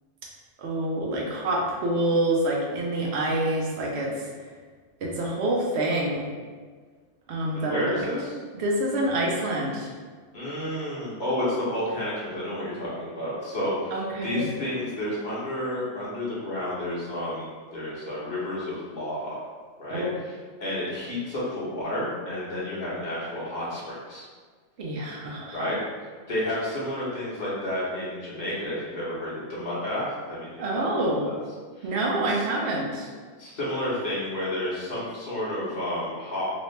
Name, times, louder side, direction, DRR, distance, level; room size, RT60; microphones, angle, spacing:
voice 1, 0.6-4.3 5.0-6.3 7.3-8.1 8.6-9.9 13.9-14.5 19.9-20.1 24.8-25.7 30.6-31.3 31.8-33.1, right 1 dB, 70° right, -2 dB, 1.0 m, -27 dB
voice 2, 7.5-8.4 10.3-19.4 19.8-20.0 20.6-24.2 25.5-25.8 26.2-30.8 31.2-31.3 31.8-31.9 32.2-32.4 33.4-36.4, left 1 dB, 45° left, -8 dB, 1.2 m, -31 dB
3.0 x 2.7 x 3.2 m, 1.5 s
omnidirectional pair, 1.1 m